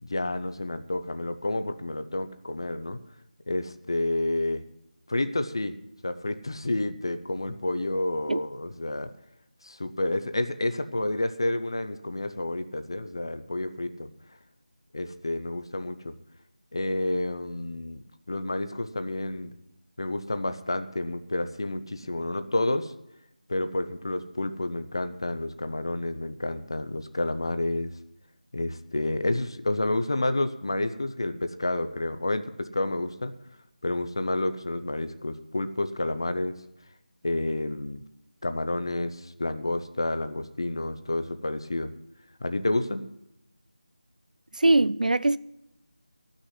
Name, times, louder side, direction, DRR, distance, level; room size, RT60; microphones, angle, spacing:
voice 1, 0.0-3.0 3.5-4.6 5.1-5.8 6.0-9.1 9.6-14.1 14.9-16.1 16.7-18.0 18.3-19.5 20.0-22.9 23.5-27.9 28.5-33.3 33.8-36.6 37.2-38.0 38.4-41.9 42.4-43.0, left 2 dB, 35° left, 0.6 m, -29 dB
voice 2, 44.5-45.4, right 2 dB, 75° right, 0.5 m, -21 dB
13.0 x 6.3 x 9.7 m
figure-of-eight pair, 180°, 4 cm